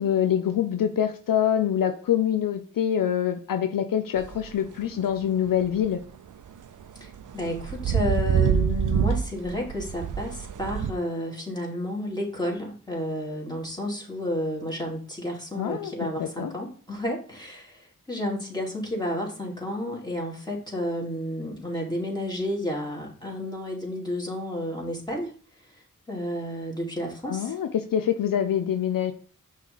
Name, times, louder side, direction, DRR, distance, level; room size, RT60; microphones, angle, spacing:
voice 1, 0.0-6.0 15.5-16.5 27.3-29.1, left 9 dB, 75° left, 9 dB, 0.5 m, -25 dB
sound 1, 4.2-4.4 4.8-5.0 5.5-5.9 6.7-10.9, right 8 dB, 65° right, 0.5 m, -26 dB
voice 2, 7.0-25.3 26.1-27.5, left 1 dB, 10° left, -2 dB, 2.6 m, -31 dB
5.7 x 3.2 x 5.5 m, 0.43 s
cardioid pair, 40°, 34 cm